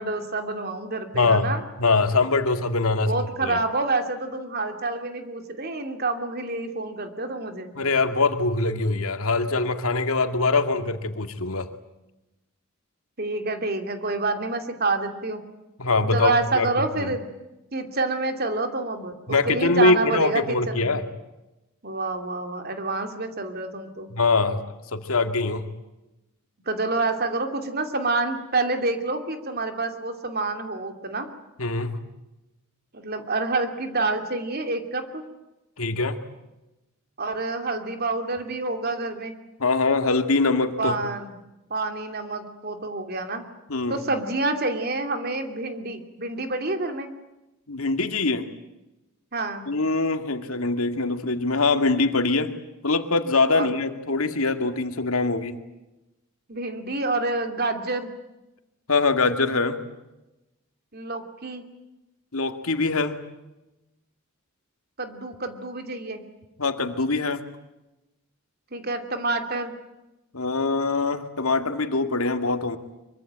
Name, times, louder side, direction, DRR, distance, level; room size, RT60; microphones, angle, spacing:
voice 1, 0.0-1.6 3.0-7.7 13.2-15.4 16.0-17.3 17.7-19.1 19.5-21.0 21.8-24.1 26.7-31.3 32.9-35.2 37.2-39.3 40.8-41.3 41.7-43.4 43.9-47.1 49.3-49.7 53.5-53.7 56.5-58.1 60.9-61.6 65.0-66.2 68.7-69.7, right 3 dB, 45° right, 6 dB, 2.7 m, -28 dB
voice 2, 1.1-1.5 1.8-3.2 3.4-3.6 7.8-11.7 15.8-16.7 17.0-17.1 19.3-21.0 24.1-24.6 24.9-25.6 31.6-32.0 35.8-36.2 39.6-41.0 43.7-44.0 47.7-48.5 49.7-52.5 52.8-55.6 58.9-59.8 62.3-63.2 66.6-67.4 70.3-72.8, left 3 dB, 85° left, 7 dB, 2.1 m, -23 dB
24.5 x 23.5 x 8.9 m, 0.98 s
head